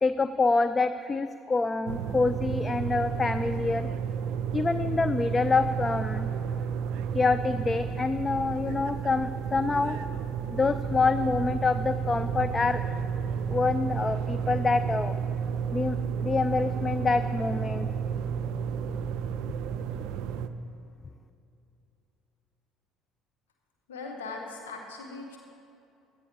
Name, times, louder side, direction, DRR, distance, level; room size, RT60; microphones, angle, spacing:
voice 1, 0.0-3.9 4.5-6.3 7.1-10.0 10.5-12.8 13.5-15.2 15.7-17.9, left 4 dB, 20° left, 12 dB, 0.4 m, -26 dB
sound 1, 1.9-20.5, right 7 dB, 55° right, 0.5 m, -31 dB
voice 2, 23.9-25.4, left 3 dB, 70° left, 1 dB, 1.3 m, -39 dB
16.5 x 12.0 x 3.8 m, 2.7 s
figure-of-eight pair, 55°, 0 cm